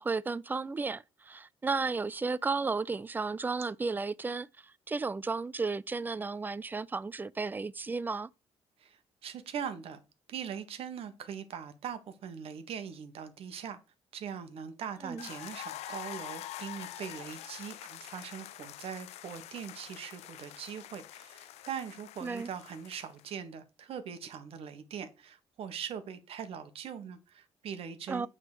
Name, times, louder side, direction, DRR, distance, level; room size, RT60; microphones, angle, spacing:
voice 1, 0.0-8.3 15.0-15.3 22.2-22.5 28.1-28.3, right 4 dB, 20° right, 0.4 m, -33 dB
voice 2, 8.8-10.0 10.3-13.8 14.1-28.3, right 7 dB, 65° right, 1.5 m, -41 dB
sound 1, 15.2-23.3, left 13 dB, 90° left, 0.5 m, -46 dB
9.0 x 3.7 x 6.7 m
cardioid pair, 125°, 11 cm